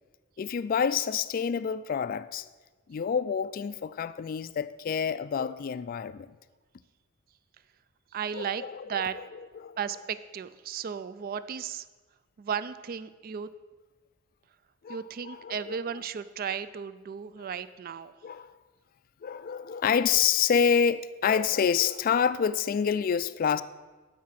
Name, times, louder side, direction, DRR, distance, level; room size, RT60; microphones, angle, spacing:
voice 1, 0.4-2.5 2.9-6.3 8.3-8.7 9.6-9.8 14.8-15.7 18.2-18.6 19.2-23.6, left 7 dB, 40° left, 0.3 m, -27 dB
voice 2, 8.1-9.2 9.8-11.9 12.4-13.5 14.9-18.1, right 7 dB, 45° right, 0.3 m, -35 dB
12.5 x 4.7 x 5.8 m
head